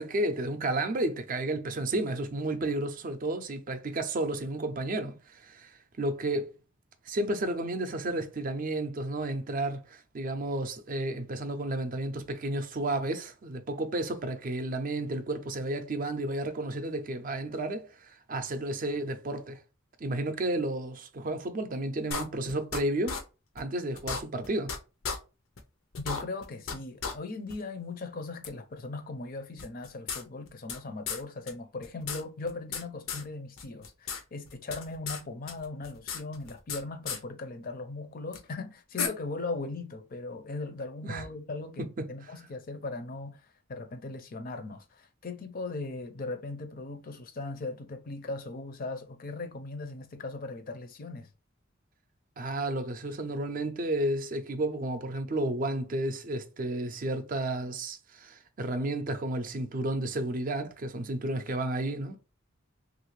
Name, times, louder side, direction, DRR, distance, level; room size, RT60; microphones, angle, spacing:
voice 1, 0.0-6.5 7.1-19.6 20.0-23.2 23.6-24.7 41.0-41.2 41.8-42.1 52.4-62.2, right 1 dB, 40° right, 0.4 m, -32 dB
sound 1, 22.1-22.8 23.1-23.2 23.6-23.7 24.0-24.8 25.0-25.2 25.6-25.7 25.9-26.8 27.0-27.1 27.5-27.6 28.4-28.5 29.6-30.8 31.1-31.2 31.5-31.6 31.8-32.8 33.1-33.2 33.6-34.2 34.5-35.2 35.5-36.8 37.1-37.2 38.3-38.4 39.0-39.1, left 5 dB, 85° left, 0.6 m, -34 dB
voice 2, 26.0-51.3, left 3 dB, 45° left, 0.5 m, -39 dB
3.1 x 2.5 x 3.1 m
head